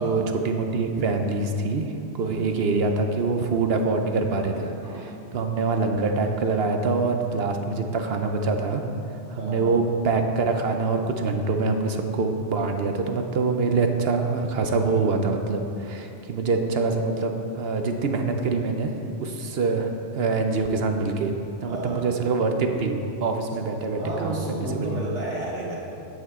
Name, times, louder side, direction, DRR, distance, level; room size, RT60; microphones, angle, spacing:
voice 1, 0.0-8.8 9.3-18.9 19.2-21.3 21.6-25.0, right 4 dB, 60° right, 5 dB, 0.9 m, -25 dB
voice 2, 4.5-5.1 9.4-9.8 21.7-22.1 23.6-25.8, right 2 dB, 85° right, -5 dB, 2.2 m, -33 dB
11.0 x 8.6 x 3.7 m, 2.7 s
omnidirectional pair, 1.2 m